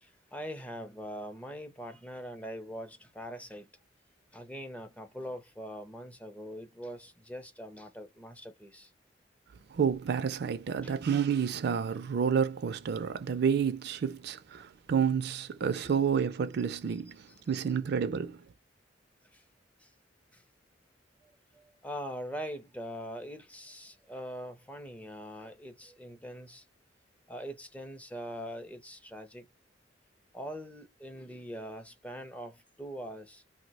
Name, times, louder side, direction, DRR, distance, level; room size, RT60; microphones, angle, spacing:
voice 1, 0.0-3.7 4.3-8.9 10.8-10.9 14.6-14.7 16.7-16.8 17.3-17.4 19.3-19.4 19.8-19.9 20.3-20.4 21.2-26.6 27.3-29.5 30.3-33.4, equal, 5° left, 0.4 m, -42 dB
voice 2, 9.7-18.5, right 7 dB, 60° right, 0.4 m, -30 dB
2.6 x 2.1 x 4.0 m
head